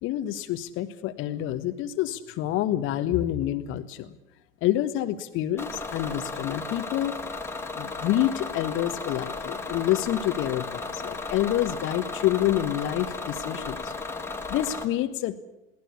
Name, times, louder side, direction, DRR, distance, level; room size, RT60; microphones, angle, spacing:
voice 1, 0.0-4.2 4.6-7.1 7.7-13.8 14.5-15.4, left 13 dB, 35° left, 8 dB, 1.4 m, -27 dB
Bus / Engine, 5.6-14.9, left 3 dB, 5° left, 2.3 m, -35 dB
21.5 x 18.0 x 8.3 m, 0.89 s
figure-of-eight pair, 90°, 35 cm